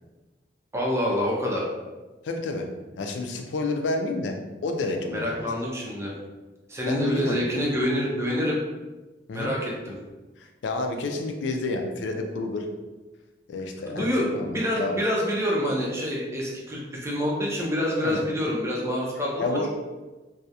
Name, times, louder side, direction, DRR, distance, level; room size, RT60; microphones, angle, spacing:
voice 1, 0.7-1.7 5.1-6.2 6.7-8.6 9.3-9.9 13.9-19.6, equal, 15° right, -3 dB, 0.5 m, -27 dB
voice 2, 2.2-2.7 3.0-5.4 6.9-7.4 9.3-9.6 10.4-12.7 13.5-14.1 14.3-15.0 18.0-18.2 19.4-19.7, left 2 dB, 90° left, 4 dB, 0.3 m, -29 dB
2.3 x 2.0 x 2.7 m, 1.2 s
head